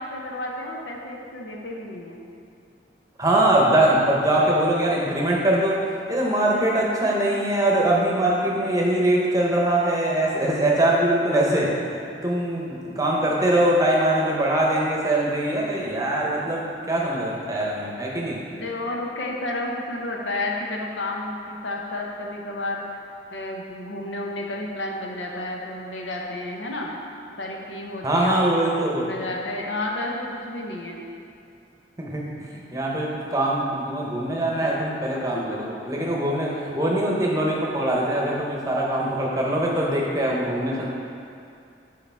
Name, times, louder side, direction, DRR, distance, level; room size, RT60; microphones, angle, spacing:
voice 1, 0.0-2.2 18.5-23.0 23.3-26.9 27.4-28.5 28.8-31.0 35.1-35.2 39.8-39.9 40.7-40.8, left 2 dB, 85° left, 0 dB, 0.9 m, -31 dB
voice 2, 3.2-5.8 6.1-11.7 12.2-18.4 28.0-29.1 32.0-32.2 32.7-40.9, right 1 dB, 20° right, -3 dB, 0.8 m, -22 dB
8.4 x 4.8 x 3.4 m, 2.5 s
head